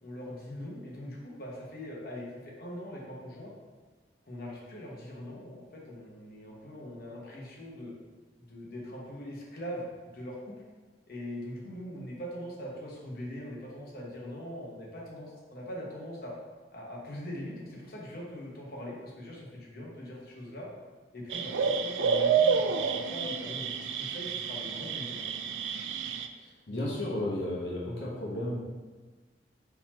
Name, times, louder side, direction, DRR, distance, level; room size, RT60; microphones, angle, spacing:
voice 1, 0.0-3.5 4.3-7.9 8.4-10.6 11.1-16.3 16.7-20.7 21.1-25.2, equal, 55° left, -4 dB, 1.1 m, -42 dB
sound 1, 21.3-26.3, right 6 dB, 90° right, 0.3 m, -29 dB
voice 2, 26.4-28.6, left 1 dB, 80° left, -5 dB, 1.0 m, -33 dB
4.4 x 4.0 x 2.9 m, 1.4 s
head